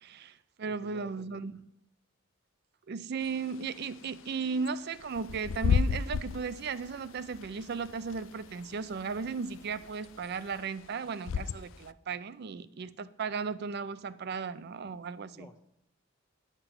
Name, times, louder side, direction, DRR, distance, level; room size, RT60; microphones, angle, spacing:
voice 1, 0.0-1.6 2.9-15.5, right 5 dB, 55° right, 15 dB, 0.5 m, -36 dB
voice 2, 0.6-1.4 15.3-15.6, left 2 dB, 15° left, 3 dB, 0.6 m, -52 dB
Bird / Wind, 3.2-11.9, left 6 dB, 70° left, 0.4 m, -34 dB
sound 1, 5.1-10.6, left 1 dB, 85° left, 1.4 m, -59 dB
10.0 x 5.9 x 6.8 m, 0.77 s
head